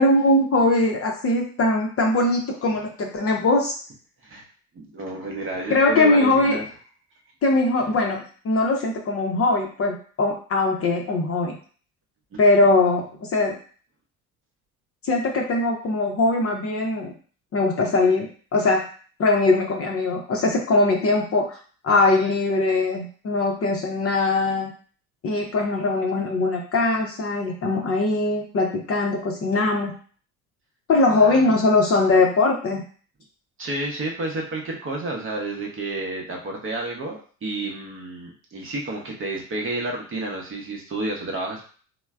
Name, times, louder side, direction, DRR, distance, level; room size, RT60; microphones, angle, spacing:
voice 1, 0.0-3.7 5.7-6.6 7.4-11.6 12.4-13.6 15.0-17.1 17.5-18.8 19.2-21.6 21.8-24.7 25.2-30.0 30.9-32.8, left 2 dB, 35° left, 1 dB, 0.6 m, -21 dB
voice 2, 4.7-6.7 12.3-12.4 31.1-31.4 33.6-41.6, right 2 dB, 30° right, 0 dB, 0.8 m, -30 dB
3.1 x 2.1 x 2.3 m, 0.42 s
hypercardioid pair, 70°, 44 cm